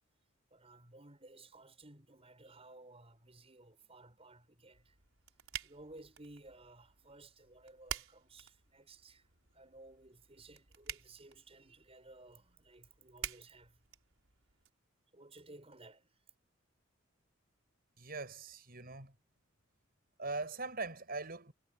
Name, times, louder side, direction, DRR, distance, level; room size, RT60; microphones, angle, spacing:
voice 1, 0.5-5.0 5.6-13.8 15.1-16.2, right 2 dB, 30° right, 7.4 m, -57 dB
sound 1, 4.7-14.7, right 9 dB, 85° right, 4.9 m, -49 dB
voice 2, 18.0-19.1 20.2-21.5, right 3 dB, 50° right, 6.6 m, -41 dB
head